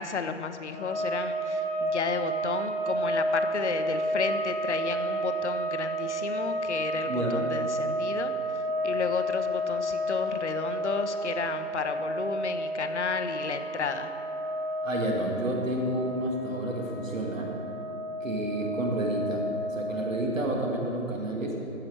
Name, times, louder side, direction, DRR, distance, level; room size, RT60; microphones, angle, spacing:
voice 1, 0.0-8.3 8.8-14.1, left 5 dB, 60° left, 9 dB, 0.8 m, -32 dB
sound 1, 0.7-20.3, right 1 dB, 15° left, 0.5 m, -31 dB
voice 2, 7.1-7.4 14.8-17.5 18.2-19.4 19.7-21.6, right 1 dB, 75° right, 0 dB, 2.1 m, -30 dB
14.5 x 6.0 x 4.6 m, 2.7 s
figure-of-eight pair, 155°, 39 cm